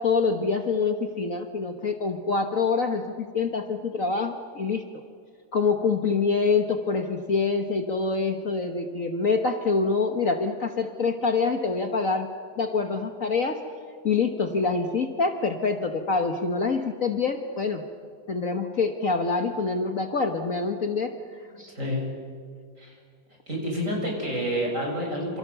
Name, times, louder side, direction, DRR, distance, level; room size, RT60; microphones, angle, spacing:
voice 1, 0.0-4.8 5.5-12.3 12.6-13.6 14.0-17.8 18.3-21.1 21.6-21.7, left 4 dB, 45° left, 5 dB, 1.6 m, -25 dB
voice 2, 21.5-22.1 22.8-22.9 23.5-25.4, equal, 40° right, 0 dB, 7.6 m, -29 dB
28.0 x 28.0 x 7.0 m, 2.2 s
omnidirectional pair, 2.1 m